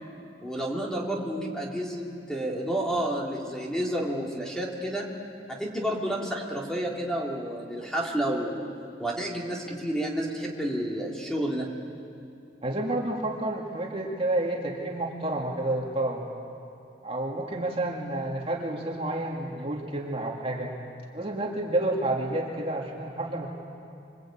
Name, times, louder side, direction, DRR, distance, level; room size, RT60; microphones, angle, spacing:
voice 1, 0.4-5.1 5.5-8.7 9.0-11.7, right 1 dB, 5° left, -2 dB, 2.9 m, -30 dB
voice 2, 12.6-16.2 17.0-20.7 21.1-23.5, right 1 dB, 30° right, -1 dB, 2.5 m, -30 dB
26.5 x 23.5 x 9.0 m, 2.8 s
head